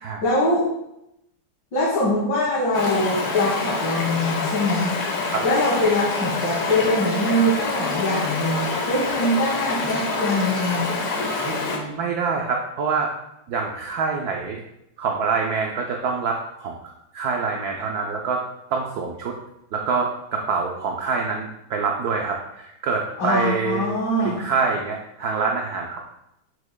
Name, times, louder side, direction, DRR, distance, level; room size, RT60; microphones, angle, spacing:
voice 1, 0.2-0.7 1.7-5.0 5.4-11.0 23.2-24.4, left 1 dB, 60° left, -7 dB, 2.2 m, -23 dB
Stream, 2.7-11.8, left 3 dB, 80° left, 1.9 m, -26 dB
voice 2, 11.4-13.1 13.5-14.6 15.0-16.8 17.1-18.4 18.7-19.4 19.7-23.9 24.2-26.0, right 4 dB, 70° right, 1 dB, 0.9 m, -25 dB
7.0 x 6.4 x 2.2 m, 0.83 s
omnidirectional pair, 2.3 m